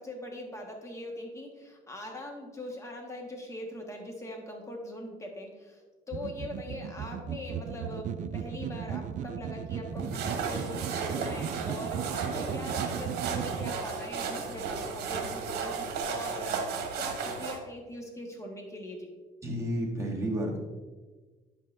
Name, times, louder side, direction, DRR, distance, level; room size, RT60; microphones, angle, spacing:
voice 1, 0.0-5.8 6.1-19.1, left 1 dB, 15° left, 1 dB, 1.5 m, -41 dB
sound 1, 6.1-13.7, right 8 dB, 50° right, 0.4 m, -36 dB
sound 2, 10.0-17.6, right 5 dB, 70° right, 1.1 m, -34 dB
voice 2, 19.4-20.6, equal, 15° right, -3 dB, 1.7 m, -31 dB
10.0 x 5.5 x 2.6 m, 1.3 s
cardioid pair, 110°, 17 cm